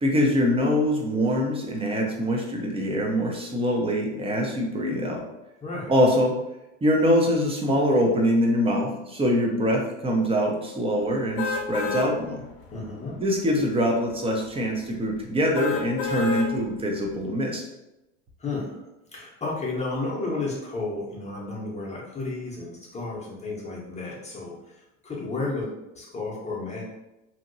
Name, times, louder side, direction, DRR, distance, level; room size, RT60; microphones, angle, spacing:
voice 1, 0.0-5.2 5.9-6.3 6.8-12.4 13.2-17.6, equal, 15° right, 0 dB, 0.6 m, -24 dB
sound 1, 11.4-12.1 12.6-12.7 15.5-16.5 17.0-17.1, left 4 dB, 50° left, 0.7 m, -28 dB
voice 2, 12.7-13.1 18.4-18.8 19.1-24.5 25.0-25.7 25.9-26.8, left 3 dB, 20° left, -5 dB, 0.8 m, -32 dB
2.8 x 2.8 x 2.6 m, 0.93 s
hypercardioid pair, 95°, 37 cm